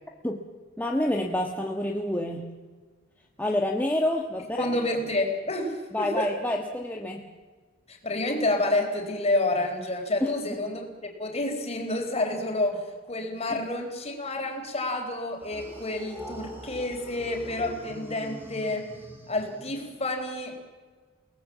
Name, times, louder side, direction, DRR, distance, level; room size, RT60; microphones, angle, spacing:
voice 1, 0.8-2.5 3.4-4.7 5.9-7.3 10.2-10.6 13.5-13.6, left 1 dB, 10° left, 0 dB, 1.4 m, -28 dB
voice 2, 4.6-6.3 7.9-18.9 19.3-20.6, left 2 dB, 35° left, 3 dB, 4.1 m, -29 dB
sound 1, 15.4-20.2, equal, 10° right, 3.3 m, -44 dB
30.0 x 18.5 x 7.4 m, 1.4 s
head